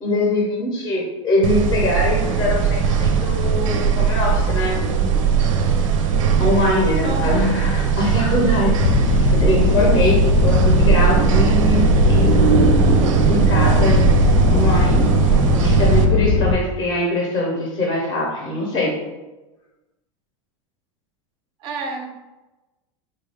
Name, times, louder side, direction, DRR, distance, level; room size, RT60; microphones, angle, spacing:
voice 1, 0.0-4.8 6.4-8.7 9.1-11.8 12.1-12.7 13.3-14.0 14.5-15.1 15.6-19.0, left 1 dB, 20° left, -3 dB, 0.6 m, -22 dB
sound 1, 1.4-16.0, right 7 dB, 90° right, 0.5 m, -18 dB
voice 2, 7.0-7.6 11.2-11.4 21.6-22.1, right 3 dB, 30° right, 3 dB, 0.5 m, -30 dB
sound 2, 8.8-16.5, left 5 dB, 80° left, 0.5 m, -19 dB
3.9 x 2.3 x 3.3 m, 1.1 s
supercardioid pair, 165°, 16 cm